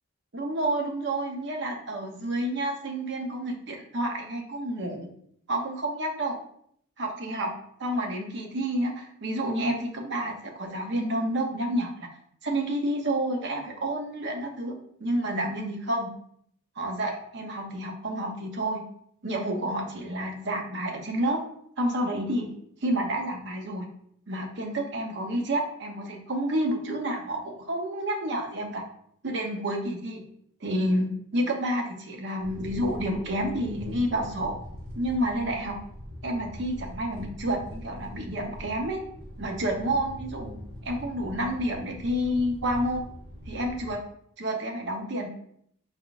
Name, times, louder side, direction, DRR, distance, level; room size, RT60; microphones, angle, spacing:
voice 1, 0.3-5.1 5.5-6.4 7.0-7.5 7.8-12.1 12.4-14.7 15.0-16.1 16.8-18.8 19.2-21.4 21.8-22.5 22.8-23.9 24.3-28.8 29.2-30.2 30.6-34.6 35.0-35.8 36.2-39.0 39.4-40.6 40.8-43.1 43.5-44.0 44.4-45.3, right 1 dB, 55° right, 3 dB, 0.6 m, -29 dB
sound 1, 32.4-43.9, equal, 85° right, 1.1 m, -42 dB
4.5 x 3.9 x 2.4 m, 0.68 s
head